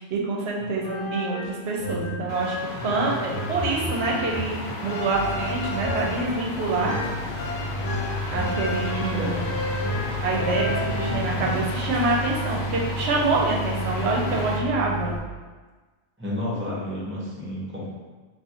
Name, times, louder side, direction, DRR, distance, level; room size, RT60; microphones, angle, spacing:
voice 1, 0.0-6.9 8.3-9.4 10.2-15.2, right 3 dB, 70° right, -2 dB, 0.8 m, -26 dB
sound 1, 0.6-11.6, left 1 dB, 90° left, 0.9 m, -32 dB
sound 2, 2.3-14.6, left 2 dB, 55° left, 0.5 m, -34 dB
sound 3, 5.1-15.2, right 2 dB, 40° right, 0.9 m, -32 dB
voice 2, 16.2-17.9, left 1 dB, 15° right, -7 dB, 0.6 m, -30 dB
2.5 x 2.4 x 4.1 m, 1.3 s
omnidirectional pair, 1.2 m